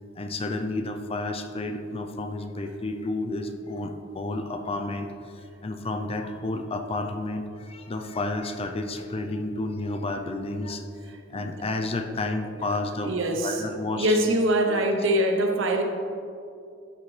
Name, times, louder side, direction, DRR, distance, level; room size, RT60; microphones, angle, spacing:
voice 1, 0.2-5.1 5.3-10.8 11.3-13.2 13.4-14.2 14.7-14.8, left 2 dB, 30° left, 6 dB, 0.5 m, -31 dB
voice 2, 13.0-13.6 13.9-15.8, right 1 dB, 80° right, 4 dB, 0.9 m, -23 dB
12.0 x 6.2 x 3.3 m, 2.5 s
head